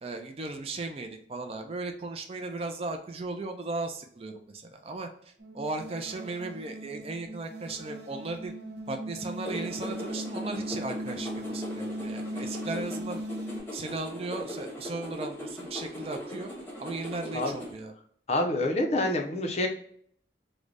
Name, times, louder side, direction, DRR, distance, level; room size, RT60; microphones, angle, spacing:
voice 1, 0.0-8.5 8.9-13.2 13.7-16.5 16.8-17.9, right 3 dB, 35° right, 5 dB, 0.3 m, -36 dB
sound 1, 5.4-13.6, equal, 75° right, 0.8 m, -38 dB
sound 2, 9.4-17.7, equal, 10° left, 0.8 m, -40 dB
voice 2, 18.3-19.7, left 1 dB, 35° left, 3 dB, 0.5 m, -27 dB
3.7 x 2.1 x 3.2 m, 0.63 s
head